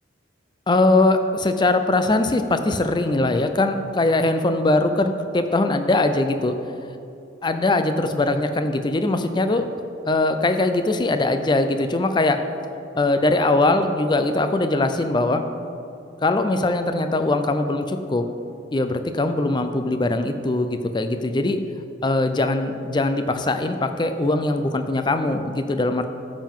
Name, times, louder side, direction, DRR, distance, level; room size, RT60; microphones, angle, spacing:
voice 1, 0.7-6.5 7.4-9.7 10.0-12.4 13.0-15.4 16.2-18.3 18.7-21.6 22.0-26.0, left 2 dB, 25° left, 8 dB, 0.4 m, -21 dB
12.0 x 7.4 x 3.7 m, 2.7 s
head